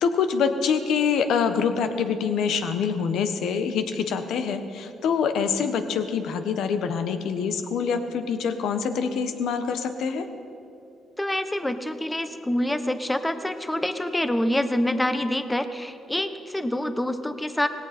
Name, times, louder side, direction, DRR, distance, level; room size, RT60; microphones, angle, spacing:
voice 1, 0.0-10.2, left 6 dB, 75° left, 8 dB, 1.1 m, -25 dB
voice 2, 11.2-17.7, left 1 dB, 10° left, 10 dB, 0.9 m, -26 dB
19.0 x 17.0 x 4.4 m, 2.7 s
cardioid pair, 90°, 0 cm